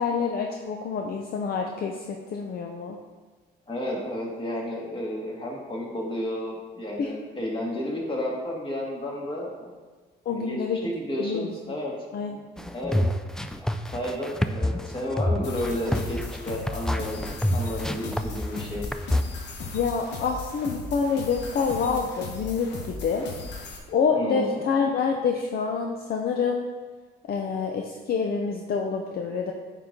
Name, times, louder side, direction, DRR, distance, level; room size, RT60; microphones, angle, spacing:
voice 1, 0.0-3.0 7.0-7.1 10.3-10.8 11.2-11.5 12.1-12.4 19.7-23.3 23.9-26.7 27.3-29.5, left 5 dB, 55° left, 2 dB, 0.6 m, -27 dB
voice 2, 3.7-9.7 10.2-10.6 10.8-11.9 12.7-13.0 13.9-16.2 16.4-17.2 17.5-18.9 24.1-24.6, left 1 dB, 25° left, -2 dB, 1.8 m, -32 dB
sound 1, 12.6-19.2, left 1 dB, 5° left, 0.3 m, -27 dB
sound 2, 15.4-23.8, left 3 dB, 70° left, 1.1 m, -37 dB
9.2 x 4.0 x 3.7 m, 1.4 s
cardioid pair, 105°, 19 cm